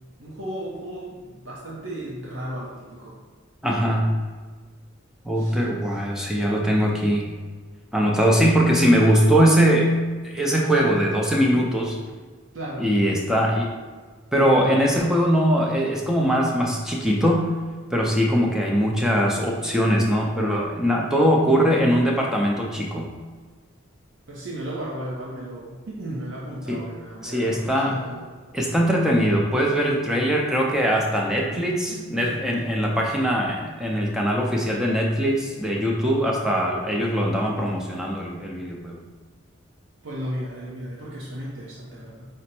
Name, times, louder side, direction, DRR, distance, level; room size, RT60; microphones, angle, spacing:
voice 1, 0.2-3.2 5.4-5.6 12.5-12.9 24.3-28.2 31.5-32.4 40.0-42.3, right 1 dB, 65° right, -5 dB, 0.7 m, -35 dB
voice 2, 3.6-4.2 5.2-7.3 7.9-10.0 10.2-12.0 12.8-13.7 14.3-17.5 17.9-23.1 26.7-26.8 27.2-28.0 28.5-39.0, equal, 5° right, -2 dB, 0.5 m, -21 dB
5.1 x 2.1 x 4.3 m, 1.4 s
head